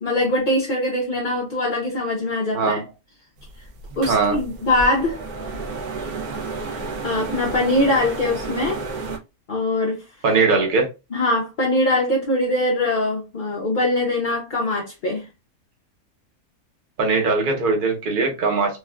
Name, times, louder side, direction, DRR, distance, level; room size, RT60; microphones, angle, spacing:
voice 1, 0.0-2.8 4.0-5.2 7.0-8.8 9.5-10.0 11.1-15.3, left 1 dB, 55° left, 0.5 m, -22 dB
sound 1, 3.4-9.2, right 3 dB, 90° right, 1.2 m, -32 dB
voice 2, 4.1-4.4 10.2-10.9 17.0-18.8, right 4 dB, 40° right, 0.8 m, -20 dB
3.4 x 2.3 x 2.2 m
omnidirectional pair, 1.5 m